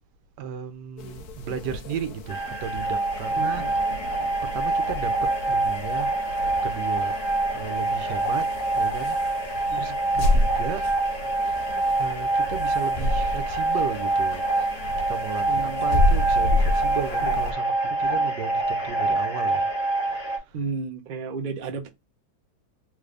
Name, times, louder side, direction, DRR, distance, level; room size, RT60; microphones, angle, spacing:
voice 1, 0.4-4.0 4.4-10.9 11.9-14.4 15.1-19.7 20.0-20.6, right 7 dB, 85° right, 1.2 m, -35 dB
sound 1, 1.0-17.5, left 1 dB, 70° left, 1.0 m, -30 dB
sound 2, 2.3-20.4, right 2 dB, 35° left, 0.9 m, -26 dB
voice 2, 3.4-4.3 9.7-10.0 15.5-16.1 17.2-17.4 18.0-18.3 20.5-21.9, right 5 dB, 60° right, 0.5 m, -34 dB
3.5 x 2.5 x 3.2 m
omnidirectional pair, 1.8 m